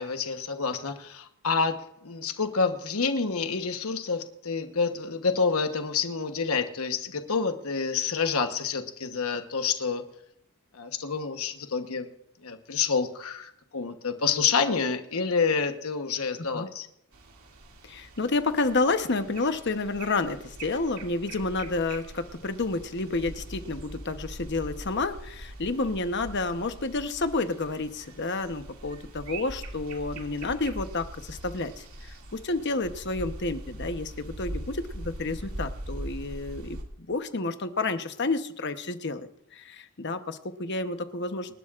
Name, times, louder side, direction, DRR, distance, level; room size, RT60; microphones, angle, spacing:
voice 1, 0.0-10.0 10.7-12.1 12.4-16.9, left 5 dB, 75° left, 7 dB, 1.1 m, -28 dB
sound 1, 17.1-36.8, right 1 dB, 80° right, 2.4 m, -42 dB
voice 2, 17.8-36.8 37.1-41.5, left 3 dB, 50° left, 9 dB, 1.0 m, -30 dB
26.5 x 12.0 x 2.5 m, 0.76 s
head